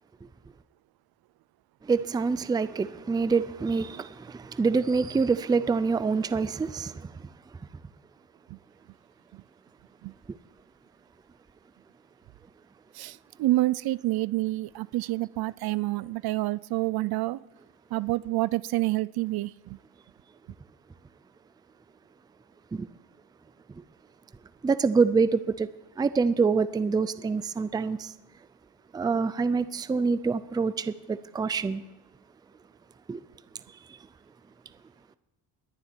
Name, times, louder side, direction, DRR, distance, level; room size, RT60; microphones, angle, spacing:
voice 1, 1.8-7.3 22.7-22.9 24.6-25.7 26.0-28.1 28.9-31.8 33.1-33.2, right 4 dB, 10° right, 0.4 m, -26 dB
voice 2, 12.9-17.4 17.9-19.8, right 18 dB, 60° right, 0.6 m, -28 dB
20.0 x 7.3 x 9.9 m
cardioid pair, 150°, 41 cm